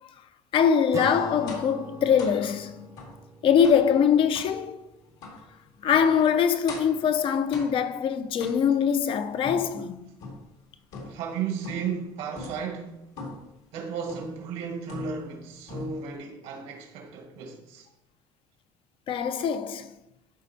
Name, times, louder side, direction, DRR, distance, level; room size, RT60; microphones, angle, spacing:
voice 1, 0.5-3.0 3.4-4.9 5.8-10.1 19.1-20.0, left 7 dB, 50° left, 0.6 m, -23 dB
Acoustic guitar / Strum, 0.9-5.6, right 3 dB, 30° right, 0.6 m, -42 dB
sound 1, 1.5-1.8 2.2-2.4 3.0-3.2 3.6-3.9 4.3-4.6 5.2-5.4 5.9-6.2 6.7-7.0 7.5-7.9 8.4-8.9 9.4-10.5 10.9-11.3 11.6-12.0 12.3-12.7 13.2-13.5 14.1-14.4 14.9-15.4 15.7-16.2, left 3 dB, 80° left, 2.2 m, -41 dB
voice 2, 11.0-13.0 13.7-17.9, right 6 dB, 80° right, 1.5 m, -34 dB
12.0 x 4.3 x 2.8 m
supercardioid pair, 95°, 11 cm